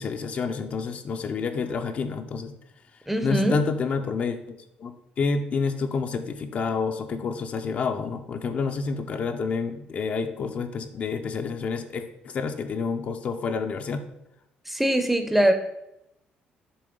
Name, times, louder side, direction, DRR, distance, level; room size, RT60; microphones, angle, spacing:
voice 1, 0.0-2.5 3.2-14.0, left 5 dB, 45° left, 6 dB, 0.5 m, -29 dB
voice 2, 3.1-3.6 14.7-15.5, right 1 dB, 5° right, 8 dB, 0.6 m, -22 dB
6.9 x 3.1 x 5.1 m, 0.86 s
cardioid pair, 130°, 3 cm